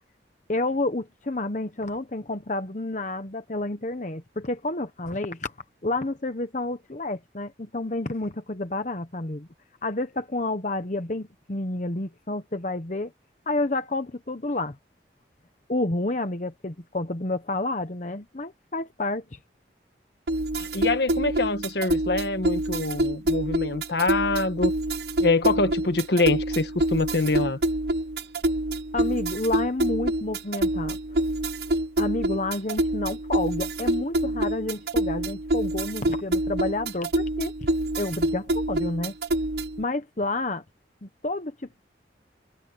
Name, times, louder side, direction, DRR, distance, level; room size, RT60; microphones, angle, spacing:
voice 1, 0.5-5.5 5.8-9.5 9.8-13.1 13.5-14.8 15.7-19.4 28.9-31.0 32.0-37.5 37.9-39.1 39.8-40.6 41.0-41.8, left 2 dB, 40° left, 1.0 m, -29 dB
sound 1, 20.3-39.8, right 1 dB, 60° right, 0.8 m, -26 dB
voice 2, 20.6-24.7 25.2-27.6, left 3 dB, 65° left, 1.4 m, -25 dB
head